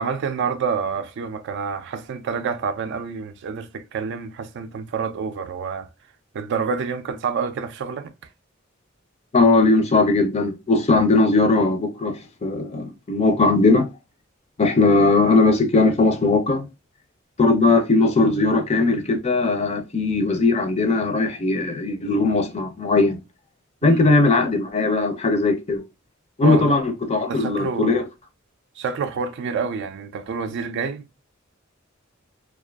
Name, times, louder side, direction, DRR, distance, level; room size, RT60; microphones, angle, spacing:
voice 1, 0.0-5.9 6.3-8.1 23.8-24.1 26.4-26.7 27.2-28.1 28.8-31.1, right 5 dB, 60° right, 0.3 m, -28 dB
voice 2, 9.3-13.9 14.6-16.7 17.4-23.2 23.8-25.8 26.4-28.0, left 3 dB, 30° left, 0.5 m, -19 dB
2.4 x 2.3 x 2.2 m
head